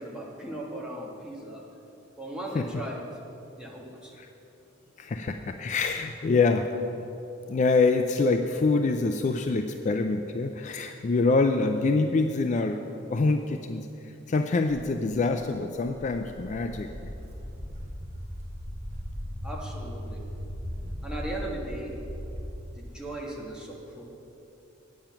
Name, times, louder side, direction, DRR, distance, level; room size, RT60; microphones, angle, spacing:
voice 1, 0.0-1.6 2.2-3.0 3.6-4.1 19.4-20.2 21.0-21.9 22.8-24.0, right 1 dB, 5° right, -3 dB, 1.5 m, -37 dB
voice 2, 5.0-6.7 7.5-12.8 13.1-17.1, left 3 dB, 35° left, 6 dB, 0.4 m, -25 dB
Walk footsteps, 15.0-22.4, equal, 35° right, 1.9 m, -38 dB
8.9 x 8.6 x 5.8 m, 2.9 s
head